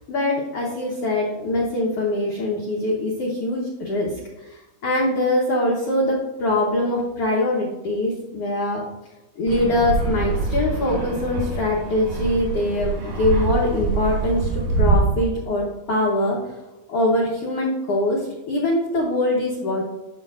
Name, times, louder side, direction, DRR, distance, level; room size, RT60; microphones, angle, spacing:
voice 1, 0.1-8.8 9.4-16.4 16.9-19.8, left 1 dB, 80° left, -3 dB, 1.3 m, -23 dB
Fixed-wing aircraft airplane, 9.5-15.0, right 4 dB, 80° right, 3.4 m, -25 dB
11.0 x 6.5 x 2.4 m, 1.0 s
omnidirectional pair, 4.1 m